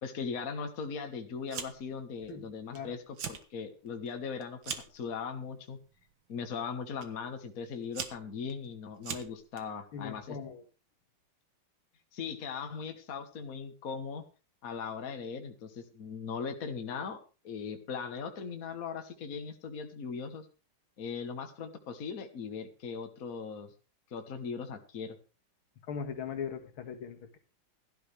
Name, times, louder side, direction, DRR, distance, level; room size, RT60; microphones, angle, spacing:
voice 1, 0.0-5.8 6.3-10.4 12.1-14.2 14.6-20.5 21.0-23.7 24.1-25.2, left 5 dB, 45° left, 6 dB, 1.8 m, -39 dB
Fire, 1.5-2.0 2.3-2.8 3.1-3.4 3.9-5.0 5.8-6.1 7.0-7.1 7.7-9.6, right 7 dB, 65° right, 2.0 m, -41 dB
voice 2, 9.9-10.6 25.9-27.4, left 7 dB, 80° left, 4 dB, 2.5 m, -39 dB
16.5 x 12.0 x 3.4 m, 0.32 s
omnidirectional pair, 2.3 m